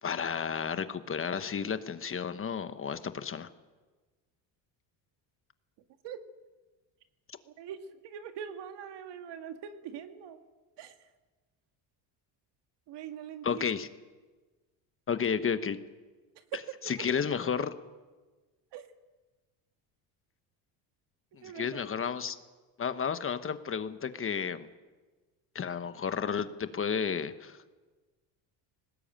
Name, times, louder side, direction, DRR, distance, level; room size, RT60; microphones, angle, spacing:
voice 1, 0.0-3.5 13.4-13.9 15.1-15.8 16.9-17.7 21.3-22.4 22.8-24.7 25.5-27.6, left 6 dB, 30° left, 11 dB, 1.2 m, -32 dB
voice 2, 7.5-10.4 10.8-11.1 12.9-13.7 16.4-16.5 16.8-17.0 18.7-18.9 21.4-21.9, right 8 dB, 65° right, 7 dB, 2.1 m, -43 dB
21.0 x 19.0 x 9.0 m, 1.3 s
cardioid pair, 120°, 44 cm